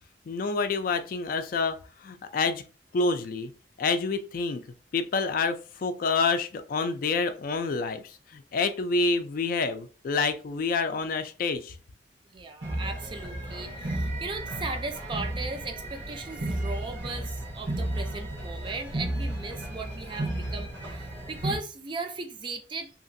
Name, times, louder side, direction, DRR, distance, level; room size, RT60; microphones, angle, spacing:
voice 1, 0.3-1.8 2.0-2.6 2.9-3.5 3.8-4.6 4.9-8.0 8.3-11.7, left 4 dB, 50° left, 0.3 m, -27 dB
voice 2, 12.3-22.9, right 3 dB, 25° right, 0.4 m, -37 dB
sound 1, 12.6-21.6, right 1 dB, 80° right, 1.2 m, -33 dB
2.9 x 2.4 x 2.6 m
head